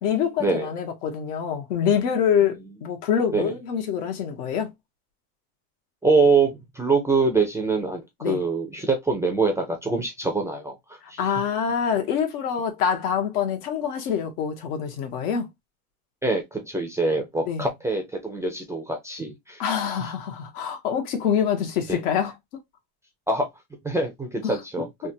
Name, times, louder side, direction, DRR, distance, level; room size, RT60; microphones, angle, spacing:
voice 1, 0.0-4.7 8.2-8.4 11.2-15.5 17.5-17.7 19.6-22.3 24.4-24.9, left 8 dB, 85° left, 1.3 m, -25 dB
voice 2, 6.0-6.5 6.8-10.7 11.1-11.2 16.2-19.6 20.0-20.1 21.9-22.0 23.3-23.5 23.8-24.9, right 3 dB, 5° right, 0.3 m, -24 dB
3.5 x 2.2 x 2.7 m
supercardioid pair, 130°, 45 cm